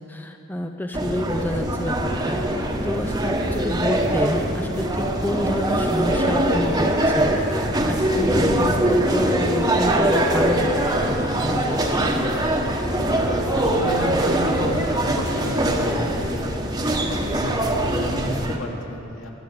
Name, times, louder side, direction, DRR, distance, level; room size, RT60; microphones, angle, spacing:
voice 1, 0.0-2.4 2.8-10.9 11.3-12.2, left 1 dB, 10° left, 5 dB, 0.5 m, -29 dB
sound 1, 0.9-18.6, right 1 dB, 20° right, 1.1 m, -22 dB
voice 2, 13.5-16.2 17.3-19.3, equal, 70° left, 0 dB, 2.4 m, -31 dB
15.5 x 11.5 x 8.0 m, 2.8 s
head